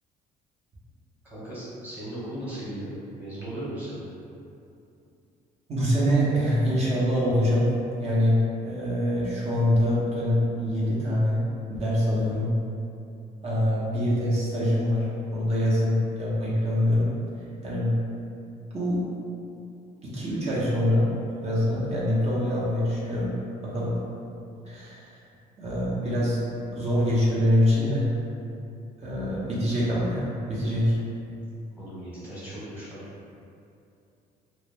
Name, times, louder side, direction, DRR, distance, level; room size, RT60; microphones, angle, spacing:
voice 1, 1.2-2.9 3.2-4.0 31.8-33.0, right 1 dB, 10° right, -11 dB, 0.9 m, -37 dB
voice 2, 5.7-7.7 8.0-11.4 11.7-12.5 13.4-17.1 17.6-17.9 18.7-19.0 20.0-21.1 21.4-23.3 23.6-24.0 24.6-25.1 25.6-26.4 26.7-28.1 29.0-31.0, left 1 dB, 40° right, -7 dB, 0.7 m, -24 dB
2.1 x 2.0 x 3.2 m, 2.6 s
cardioid pair, 110°, 17 cm